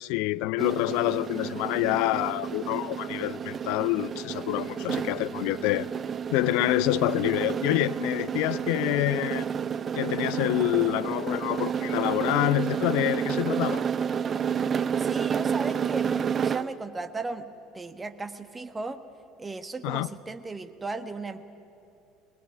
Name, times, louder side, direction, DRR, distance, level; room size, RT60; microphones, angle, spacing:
voice 1, 0.0-5.9 6.3-9.5 10.0-13.8 19.8-20.1, left 19 dB, 60° left, 0.4 m, -27 dB
sound 1, 0.6-16.8, right 7 dB, 35° right, 0.5 m, -30 dB
voice 2, 15.0-17.5 17.7-19.0 19.4-21.4, right 3 dB, 20° right, 1.3 m, -36 dB
21.0 x 19.5 x 9.6 m
figure-of-eight pair, 65°, 0 cm